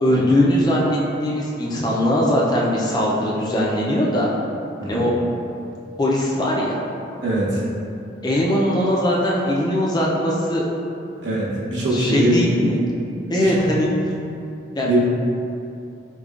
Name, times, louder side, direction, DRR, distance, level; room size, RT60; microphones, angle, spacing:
voice 1, 0.0-4.3 4.8-5.1 5.4-5.5 6.0-6.8 8.2-10.6 11.9-12.8 13.3-13.9 14.8-15.0, left 1 dB, 20° left, -4 dB, 0.3 m, -20 dB
voice 2, 7.2-7.6 11.2-12.4 13.3-13.5 14.8-15.0, right 1 dB, 70° right, -6 dB, 0.8 m, -21 dB
4.9 x 2.2 x 2.3 m, 2.6 s
head